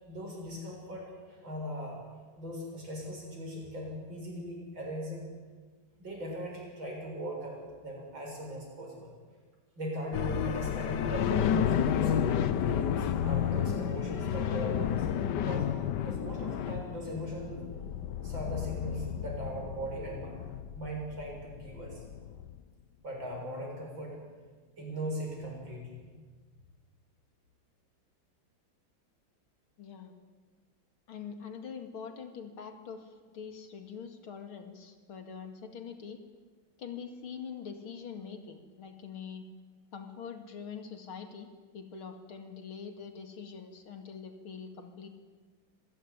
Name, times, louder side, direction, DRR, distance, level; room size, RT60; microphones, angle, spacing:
voice 1, 0.1-5.2 6.0-9.1 9.8-12.1 12.6-15.1 15.4-17.6 18.2-20.3 20.7-22.0 23.0-24.2 24.8-26.1, equal, 70° right, -1 dB, 8.0 m, -39 dB
sound 1, 10.1-22.6, left 9 dB, 65° left, 1.4 m, -31 dB
voice 2, 29.8-30.1 31.1-36.2 36.8-39.4 39.9-41.5 41.7-45.1, left 6 dB, 85° left, 6 dB, 3.1 m, -44 dB
26.0 x 16.5 x 9.9 m, 1.4 s
omnidirectional pair, 2.2 m